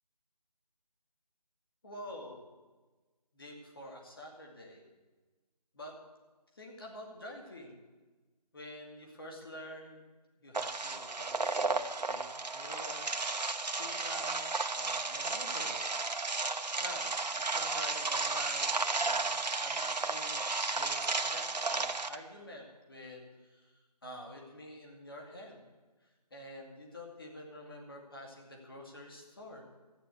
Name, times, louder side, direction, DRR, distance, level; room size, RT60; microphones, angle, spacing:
voice 1, 1.8-2.5 3.3-4.8 5.7-6.0 6.5-7.8 8.5-10.0 10.4-12.2 12.5-15.8 16.8-25.6 26.0-29.7, left 1 dB, 35° left, 0 dB, 2.5 m, -48 dB
sound 1, 10.5-22.2, right 3 dB, 85° right, 1.0 m, -33 dB
13.5 x 9.2 x 8.3 m, 1.3 s
figure-of-eight pair, 175°, 21 cm